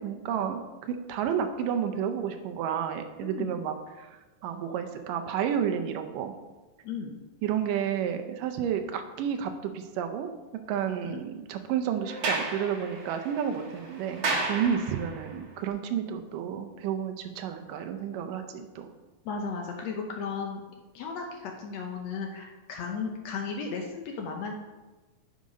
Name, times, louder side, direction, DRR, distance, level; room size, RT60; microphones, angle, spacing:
voice 1, 0.0-4.1 4.4-6.3 7.4-10.3 10.7-14.2 14.5-18.9, right 8 dB, 75° right, 6 dB, 2.2 m, -31 dB
voice 2, 3.2-3.6 6.8-7.2 11.0-11.2 19.2-20.6 20.9-24.6, left 5 dB, 75° left, 2 dB, 1.6 m, -35 dB
Sliding door, 12.0-15.3, right 3 dB, 55° right, 1.4 m, -33 dB
10.5 x 5.2 x 5.2 m, 1.2 s
omnidirectional pair, 4.1 m